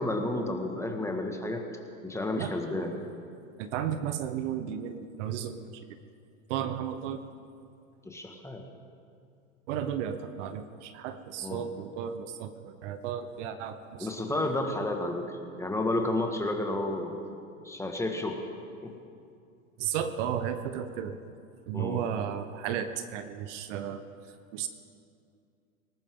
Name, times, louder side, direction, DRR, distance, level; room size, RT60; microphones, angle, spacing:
voice 1, 0.0-1.6 2.0-2.9 8.1-8.6 11.4-11.7 14.0-17.2 17.6-18.5 18.8-18.9 21.7-22.0, left 2 dB, 5° left, 3 dB, 1.8 m, -31 dB
voice 2, 2.4-3.0 3.6-6.0 6.5-7.3 9.7-14.5 19.8-21.2 21.7-24.7, right 9 dB, 60° right, 10 dB, 1.1 m, -34 dB
19.5 x 18.5 x 3.9 m, 2.5 s
hypercardioid pair, 100°, 41 cm